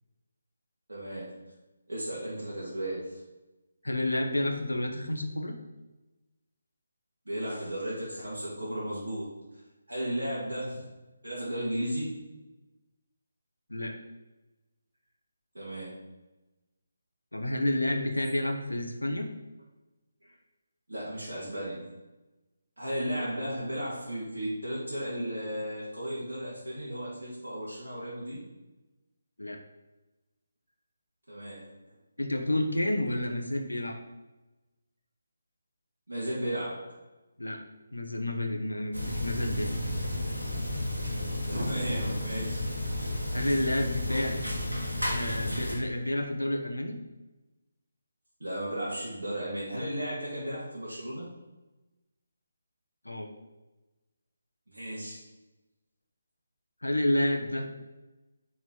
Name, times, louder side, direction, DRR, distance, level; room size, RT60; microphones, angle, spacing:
voice 1, 0.9-1.3 1.9-3.1 7.3-9.3 9.9-10.8 11.2-12.2 15.5-15.9 20.2-20.3 20.9-21.9 22.8-28.4 31.3-31.7 36.1-36.9 41.5-42.6 43.0-43.1 48.4-51.3 54.7-55.2, right 1 dB, 65° right, -7 dB, 2.3 m, -34 dB
voice 2, 3.8-5.6 13.7-13.9 17.3-19.3 29.4-29.6 32.2-33.9 37.4-37.6 37.9-39.7 43.3-44.4 45.1-47.0 53.0-53.3 56.8-57.7, left 1 dB, 75° left, 4 dB, 1.1 m, -30 dB
sound 1, 38.9-45.7, left 1 dB, 85° right, 2.0 m, -32 dB
6.5 x 4.3 x 4.6 m, 1.1 s
figure-of-eight pair, 150°, 0 cm